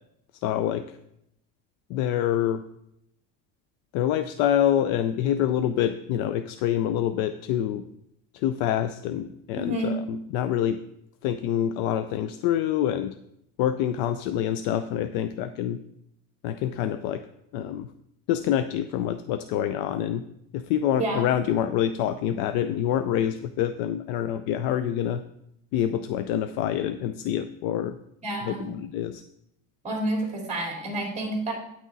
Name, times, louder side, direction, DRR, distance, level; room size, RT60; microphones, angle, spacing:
voice 1, 0.4-1.0 1.9-2.6 3.9-7.8 8.3-10.8 11.2-13.2 13.6-15.8 16.4-17.2 17.5-17.9 18.3-20.2 20.5-25.2 25.7-28.0 28.4-29.2, left 10 dB, 90° left, 10 dB, 0.5 m, -26 dB
voice 2, 9.6-10.0 21.0-21.2 28.2-28.7 29.8-31.5, right 1 dB, 20° right, 0 dB, 2.6 m, -29 dB
9.6 x 6.2 x 4.0 m, 0.78 s
cardioid pair, 165°, 35 cm